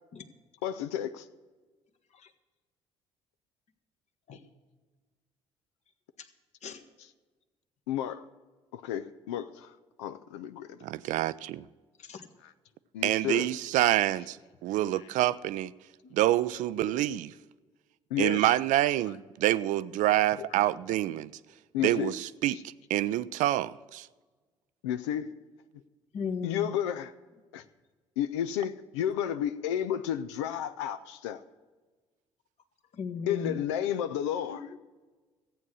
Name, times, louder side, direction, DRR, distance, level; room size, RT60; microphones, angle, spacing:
voice 1, 0.6-1.3 7.0-7.1 7.9-8.3 8.7-10.8 12.4-12.5 12.9-13.5 14.9-15.1 18.1-18.6 20.5-20.7 21.7-22.2 22.4-22.6 24.8-25.3 26.4-27.1 27.5-27.6 28.2-31.4 33.3-34.7, left 10 dB, 75° left, 0.5 m, -32 dB
voice 2, 10.8-11.6 13.0-14.4 14.6-15.7 16.1-17.3 18.2-21.3 21.8-24.1, right 14 dB, 60° right, 0.4 m, -27 dB
voice 3, 26.1-26.7 32.9-33.6 34.5-34.6, left 5 dB, 50° left, 1.3 m, -37 dB
14.5 x 8.4 x 6.3 m
figure-of-eight pair, 50°, 15 cm